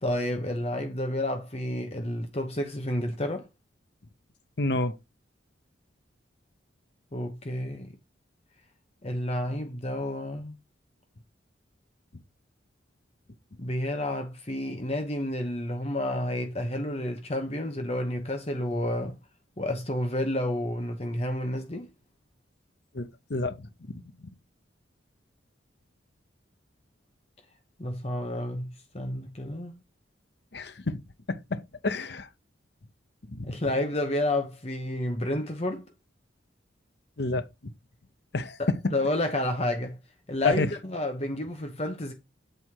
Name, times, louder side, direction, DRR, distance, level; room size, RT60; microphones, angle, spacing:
voice 1, 0.0-3.5 7.1-7.9 9.0-10.5 13.6-19.2 19.6-21.9 27.8-29.8 33.4-35.8 38.6-40.0 40.3-42.1, left 1 dB, 30° left, 1.0 m, -30 dB
voice 2, 4.6-4.9 22.9-24.0 30.5-31.0 31.3-32.3 33.3-33.6 37.2-37.7 38.3-38.6 40.4-40.7, left 2 dB, 55° left, 0.8 m, -30 dB
7.9 x 4.3 x 4.7 m
head